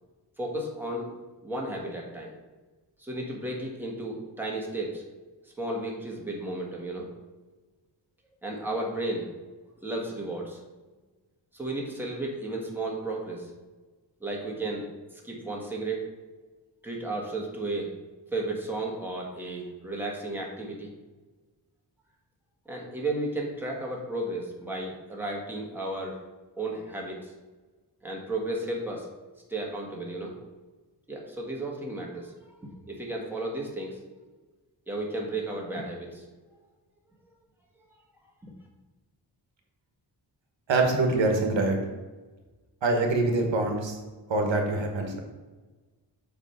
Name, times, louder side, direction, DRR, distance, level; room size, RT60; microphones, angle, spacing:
voice 1, 0.4-1.1 1.4-2.3 3.0-5.0 5.6-7.0 8.4-9.3 9.8-10.6 11.5-13.5 14.2-16.0 16.8-17.9 18.3-20.9 22.6-26.2 26.6-27.3 28.0-29.1 29.5-30.3 31.1-32.3 32.9-34.0 34.9-36.2 38.4-38.5, right 2 dB, 5° right, -2 dB, 1.4 m, -33 dB
voice 2, 40.7-41.8 42.8-44.0 44.3-45.2, right 2 dB, 85° right, 3 dB, 1.3 m, -24 dB
7.3 x 3.5 x 5.6 m, 1.3 s
wide cardioid pair, 145°, 43 cm